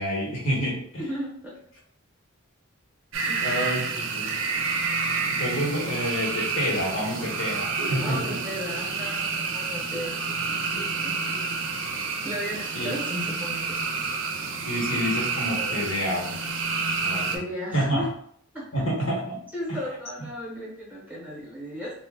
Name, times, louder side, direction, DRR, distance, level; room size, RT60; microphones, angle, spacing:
voice 1, 0.0-0.8 3.4-4.4 5.3-8.4 12.7-12.9 14.6-16.4 17.0-17.4 17.7-18.1 18.7-19.4, equal, 65° left, -3 dB, 1.0 m, -28 dB
voice 2, 1.0-1.5 3.2-3.7 8.0-11.6 12.2-13.9 17.3-18.1 18.5-18.6 19.5-21.9, equal, 10° right, -4 dB, 0.9 m, -35 dB
sound 1, 3.1-17.4, right 4 dB, 65° right, 0.5 m, -29 dB
2.8 x 2.0 x 3.4 m, 0.64 s
head